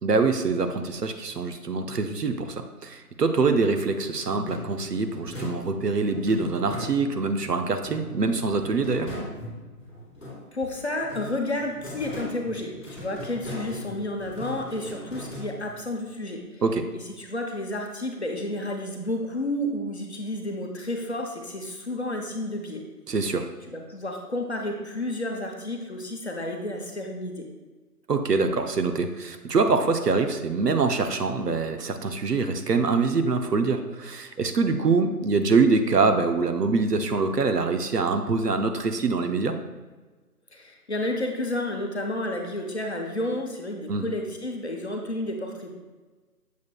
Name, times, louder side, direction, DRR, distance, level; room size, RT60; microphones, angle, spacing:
voice 1, 0.0-9.1 16.6-16.9 23.1-23.5 28.1-39.6 43.9-44.1, right 4 dB, 80° right, 7 dB, 0.8 m, -24 dB
sound 1, 4.3-7.4 7.8-10.6 11.0-15.9, left 1 dB, 5° right, 1.3 m, -39 dB
voice 2, 10.5-16.6 17.2-22.9 23.7-27.5 40.5-45.8, left 1 dB, 45° left, 1 dB, 0.8 m, -31 dB
7.2 x 6.2 x 2.3 m, 1.3 s
figure-of-eight pair, 165°, 48 cm